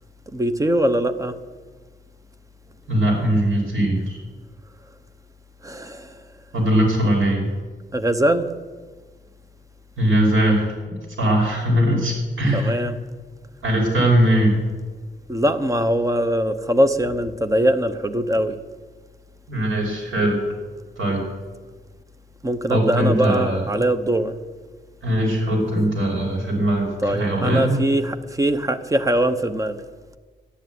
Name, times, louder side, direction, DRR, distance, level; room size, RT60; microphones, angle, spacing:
voice 1, 0.3-1.4 5.6-6.2 7.9-8.5 12.5-13.0 15.3-18.6 22.4-24.4 27.0-29.8, right 1 dB, 15° right, 9 dB, 0.9 m, -21 dB
voice 2, 2.9-4.2 6.5-7.5 10.0-12.8 13.6-14.6 19.5-20.4 21.0-21.2 22.7-23.6 25.0-27.8, right 1 dB, 75° right, -1 dB, 5.4 m, -20 dB
13.0 x 10.5 x 9.3 m, 1.4 s
wide cardioid pair, 145°, 20 cm